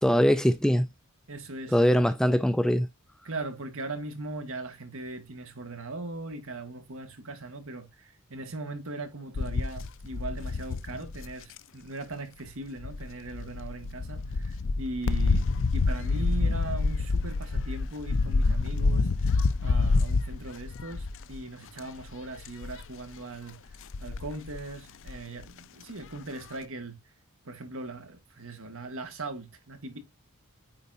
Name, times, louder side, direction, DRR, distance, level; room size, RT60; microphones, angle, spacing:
voice 1, 0.0-0.9 1.7-2.9, equal, 5° left, 0.3 m, -22 dB
voice 2, 1.3-1.8 3.2-27.0 27.4-30.0, right 2 dB, 65° right, 1.9 m, -39 dB
sound 1, 9.3-11.6 12.8-21.4 21.8-22.1 22.4-22.9 23.7-24.6 25.1-25.2 25.4-25.5, left 3 dB, 60° left, 0.5 m, -27 dB
9.6 x 4.0 x 2.7 m
head